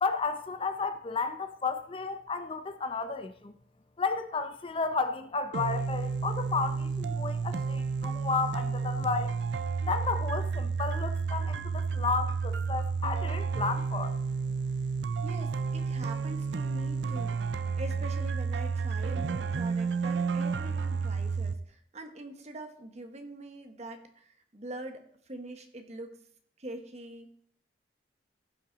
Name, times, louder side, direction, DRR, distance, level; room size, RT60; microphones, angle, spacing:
voice 1, 0.0-3.5 4.0-9.4 9.8-14.2, left 4 dB, 30° left, 0.6 m, -32 dB
sound 1, 5.5-21.5, right 5 dB, 80° right, 0.5 m, -31 dB
voice 2, 15.2-26.2 26.6-27.4, right 1 dB, 40° right, 1.2 m, -44 dB
15.5 x 5.8 x 4.0 m
head